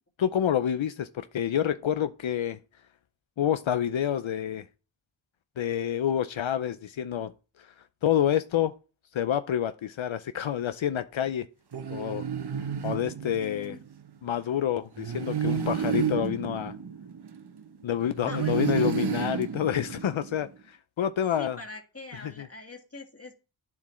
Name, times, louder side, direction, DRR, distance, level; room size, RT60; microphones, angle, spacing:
voice 1, 0.2-2.6 3.4-4.7 5.6-7.3 7.6-7.7 8.0-8.7 9.1-11.5 11.9-12.2 12.8-13.8 14.2-16.8 17.8-21.6 22.2-22.5, left 10 dB, 80° left, 0.6 m, -28 dB
sound 1, 11.7-13.8 15.0-17.7 18.2-20.4, right 7 dB, 60° right, 0.9 m, -31 dB
voice 2, 13.4-13.8 18.3-18.9 21.4-23.3, left 3 dB, 30° left, 1.8 m, -43 dB
9.6 x 7.3 x 3.1 m
wide cardioid pair, 45°, 46 cm